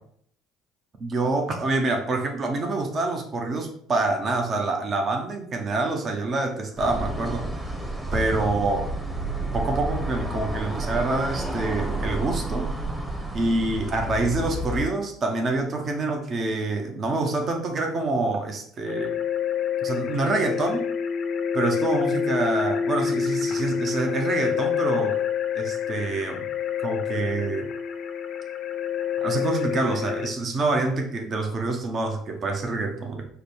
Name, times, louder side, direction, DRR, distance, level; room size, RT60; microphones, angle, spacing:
voice 1, 1.0-7.5 8.1-8.9 9.5-12.7 13.3-19.2 19.8-20.9 21.5-25.2 25.5-26.4 26.8-27.7 29.2-33.3, right 3 dB, 40° right, 4 dB, 0.8 m, -26 dB
sound 1, 6.8-14.9, right 1 dB, 10° right, 0.9 m, -30 dB
sound 2, 18.9-30.3, left 7 dB, 55° left, 0.5 m, -27 dB
5.1 x 2.2 x 4.6 m, 0.65 s
hypercardioid pair, 65°, 0 cm